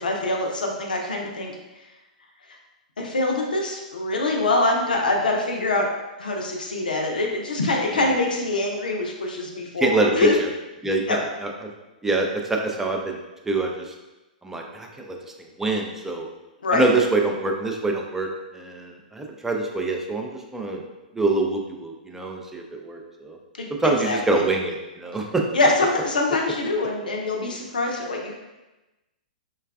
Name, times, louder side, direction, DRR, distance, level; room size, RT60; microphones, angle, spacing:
voice 1, 0.0-1.5 2.5-2.6 3.0-5.9 6.2-10.3 11.1-11.2 16.6-16.9 23.6-24.4 25.5-28.4, left 2 dB, 85° left, 1 dB, 0.5 m, -24 dB
voice 2, 9.8-10.3 10.8-11.5 12.0-13.2 13.4-13.9 14.4-15.2 15.6-16.3 16.7-18.3 18.5-20.8 21.1-23.4 23.7-25.4, right 3 dB, 10° right, 1 dB, 0.3 m, -25 dB
3.2 x 2.3 x 2.3 m, 1.0 s
hypercardioid pair, 115°, 5 cm